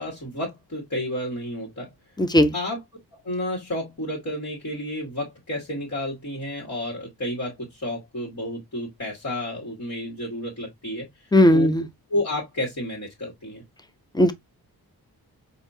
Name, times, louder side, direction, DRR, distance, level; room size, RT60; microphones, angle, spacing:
voice 1, 0.0-1.9 2.5-2.8 3.2-11.1 11.5-11.7 12.1-13.6, left 1 dB, 45° left, 2.0 m, -31 dB
voice 2, 2.2-2.5 11.3-11.9 14.1-14.3, left 1 dB, 10° left, 0.7 m, -17 dB
4.2 x 2.8 x 2.7 m
cardioid pair, 60°, 39 cm